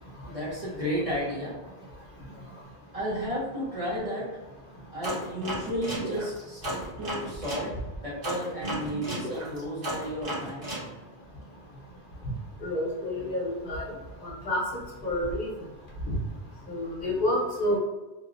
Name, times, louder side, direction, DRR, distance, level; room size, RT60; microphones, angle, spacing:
voice 1, 0.3-1.5 2.9-4.3 4.9-7.7 8.0-10.7, equal, 40° right, -6 dB, 0.6 m, -33 dB
sound 1, 5.0-7.7 8.2-10.9, right 1 dB, 60° right, 1.1 m, -34 dB
voice 2, 12.6-13.8 14.2-14.6 15.0-15.5 16.1-16.2 16.7-17.8, left 1 dB, 60° left, -4 dB, 0.8 m, -28 dB
2.7 x 2.0 x 2.4 m, 1.1 s
omnidirectional pair, 1.0 m